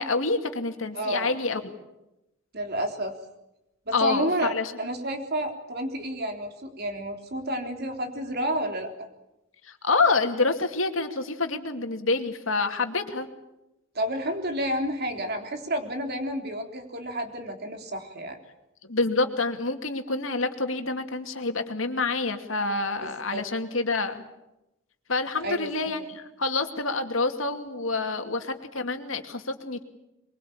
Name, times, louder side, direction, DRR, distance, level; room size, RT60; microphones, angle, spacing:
voice 1, 0.0-1.7 3.9-4.7 9.6-13.3 18.9-24.2 25.1-29.8, left 3 dB, 75° left, 6 dB, 2.5 m, -27 dB
voice 2, 1.0-1.4 2.5-3.2 3.9-4.5 4.8-9.1 13.9-18.4 23.0-23.4 25.4-25.9, right 1 dB, 50° right, 5 dB, 3.7 m, -30 dB
23.5 x 23.0 x 8.8 m, 0.92 s
head